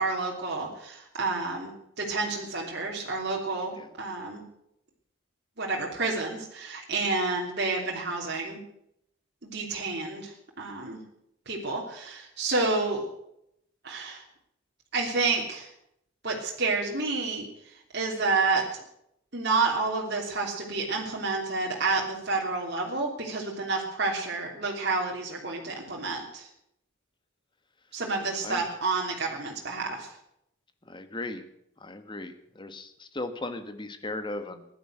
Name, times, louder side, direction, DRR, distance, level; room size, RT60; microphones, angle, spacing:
voice 1, 0.0-4.4 5.6-8.6 9.4-11.0 11.5-13.1 13.8-14.2 14.9-15.7 16.2-17.5 17.9-18.8 19.3-26.5 27.9-30.1, right 3 dB, 55° right, -2 dB, 3.0 m, -29 dB
voice 2, 28.4-28.8 30.9-31.5 31.8-34.7, left 2 dB, 25° left, 8 dB, 1.4 m, -37 dB
15.5 x 11.0 x 7.9 m, 0.77 s
head